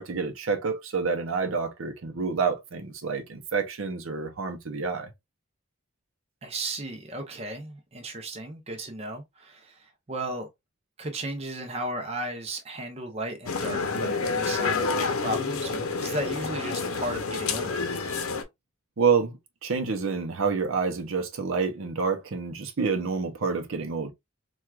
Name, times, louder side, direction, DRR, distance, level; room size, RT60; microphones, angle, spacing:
voice 1, 0.0-5.1 19.0-24.1, right 5 dB, 70° right, 0.6 m, -28 dB
voice 2, 6.4-10.5 11.0-17.8, right 1 dB, 30° right, 0.6 m, -35 dB
sound 1, 13.5-18.4, left 4 dB, 80° left, 0.6 m, -29 dB
4.4 x 2.3 x 2.3 m
head